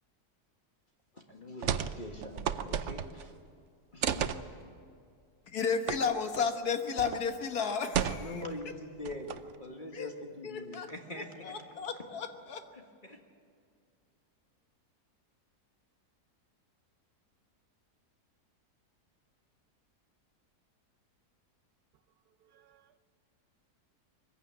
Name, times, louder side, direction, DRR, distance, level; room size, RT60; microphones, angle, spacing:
voice 1, 1.3-3.3 3.9-4.3 8.2-11.5 13.0-13.2, left 2 dB, 30° left, 1.7 m, -43 dB
sound 1, 1.6-2.0 2.2-3.3 4.0-4.4 5.9-6.0 6.3-6.4 7.0-7.2 7.9-8.5 9.0-9.6, right 8 dB, 55° right, 0.9 m, -32 dB
voice 2, 5.5-8.7 9.9-10.1 10.4-10.9 11.4-12.7, left 5 dB, 70° left, 1.8 m, -33 dB
voice 3, 22.4-23.0, right 10 dB, 75° right, 1.3 m, -65 dB
23.0 x 15.5 x 9.4 m
omnidirectional pair, 1.7 m